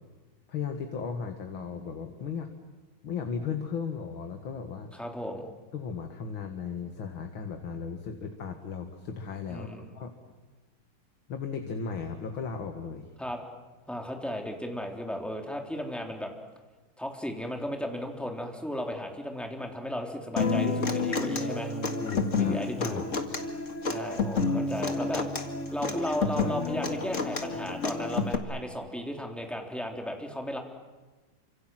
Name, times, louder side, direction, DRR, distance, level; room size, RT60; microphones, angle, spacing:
voice 1, 0.5-2.5 3.0-4.9 5.7-9.7 9.9-10.1 11.3-13.1 22.0-23.1, left 6 dB, 85° left, 5 dB, 2.7 m, -36 dB
voice 2, 4.9-5.5 9.5-9.9 13.2-13.4 13.9-16.3 17.0-21.7 22.4-23.0 23.8-25.3 25.7-30.6, equal, ahead, 2 dB, 3.4 m, -35 dB
Human voice / Acoustic guitar, 20.4-28.3, left 4 dB, 40° left, 2.3 m, -30 dB
29.0 x 26.5 x 7.7 m, 1.3 s
omnidirectional pair, 2.2 m